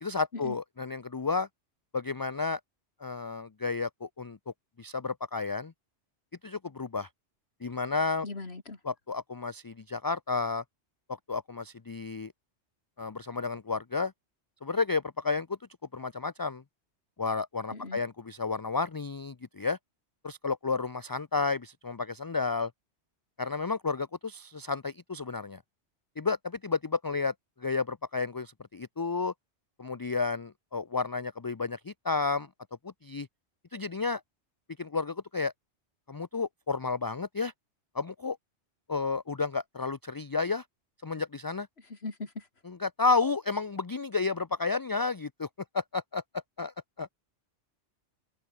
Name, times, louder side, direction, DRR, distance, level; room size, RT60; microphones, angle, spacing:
voice 1, 0.0-1.5 1.9-2.6 3.0-5.7 6.4-7.1 7.6-8.3 8.8-10.6 11.1-12.3 13.0-14.1 14.6-15.6 15.9-16.6 17.2-19.8 20.2-22.7 23.4-25.6 26.2-27.3 27.6-29.3 29.8-32.5 32.8-33.3 33.7-34.2 34.8-35.5 36.1-37.5 37.9-38.4 38.9-40.6 41.0-41.7 42.6-45.5 45.7-47.1, left 4 dB, 30° left, 0.4 m, -31 dB
voice 2, 8.2-8.8 17.7-18.0 41.9-42.5, left 3 dB, 60° left, 3.0 m, -39 dB
open air
omnidirectional pair, 1.2 m